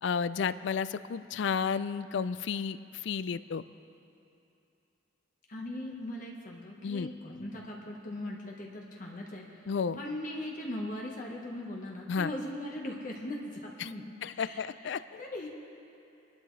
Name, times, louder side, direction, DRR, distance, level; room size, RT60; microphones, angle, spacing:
voice 1, 0.0-3.6 6.8-7.1 9.7-10.0 12.1-12.3 13.8-13.9 14.2-15.2, left 6 dB, 60° left, 15 dB, 0.4 m, -32 dB
voice 2, 5.5-9.6 10.0-15.5, left 1 dB, 40° left, -1 dB, 1.3 m, -40 dB
25.5 x 11.5 x 3.2 m, 2.7 s
head